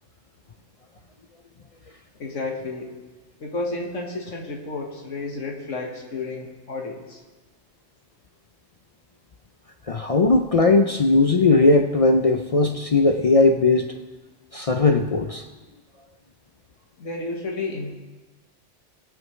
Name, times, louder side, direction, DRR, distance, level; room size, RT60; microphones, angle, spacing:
voice 1, 2.2-3.0 3.4-7.2 17.0-18.0, left 3 dB, 85° left, 0 dB, 1.8 m, -31 dB
voice 2, 9.9-13.9 14.5-15.4, left 3 dB, 50° left, 5 dB, 0.4 m, -18 dB
19.5 x 9.0 x 3.2 m, 1.2 s
omnidirectional pair, 1.3 m